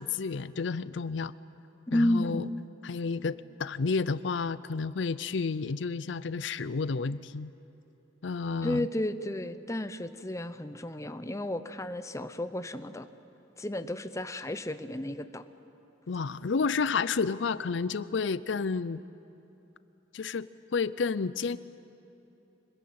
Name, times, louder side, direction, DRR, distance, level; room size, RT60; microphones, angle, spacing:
voice 1, 0.0-1.3 1.9-2.5 2.8-7.5 8.2-8.9 16.1-19.0 20.1-21.6, left 4 dB, 80° left, 16 dB, 0.5 m, -31 dB
voice 2, 1.9-2.7 8.6-13.1 13.6-15.4, left 1 dB, 15° left, 10 dB, 0.8 m, -32 dB
25.5 x 20.5 x 8.7 m, 2.9 s
head